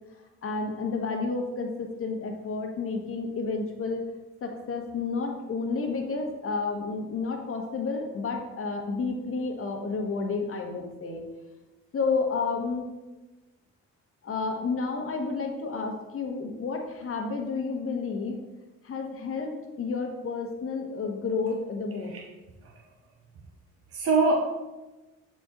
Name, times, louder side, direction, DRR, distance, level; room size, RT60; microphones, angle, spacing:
voice 1, 0.4-4.0 4.4-11.2 11.9-12.9 14.2-18.4 18.8-22.1, left 4 dB, 50° left, 2 dB, 1.2 m, -31 dB
voice 2, 23.9-24.3, right 3 dB, 50° right, -1 dB, 1.0 m, -24 dB
6.6 x 4.2 x 3.7 m, 1.1 s
cardioid pair, 90°, 30 cm